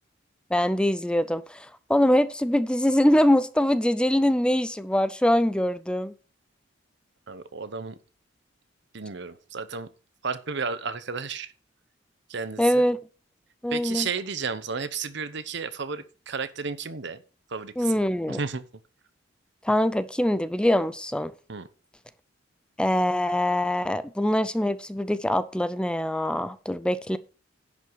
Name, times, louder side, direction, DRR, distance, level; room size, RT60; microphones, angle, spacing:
voice 1, 0.5-6.1 12.6-13.0 13.6-14.1 17.8-18.4 19.6-21.3 22.8-27.2, left 1 dB, 5° left, 0.5 m, -23 dB
voice 2, 7.3-8.0 8.9-9.9 10.2-11.5 12.3-12.8 13.7-17.2 17.5-18.0 18.3-18.6 21.5-21.7, right 5 dB, 65° right, 1.0 m, -33 dB
11.0 x 5.6 x 6.3 m
head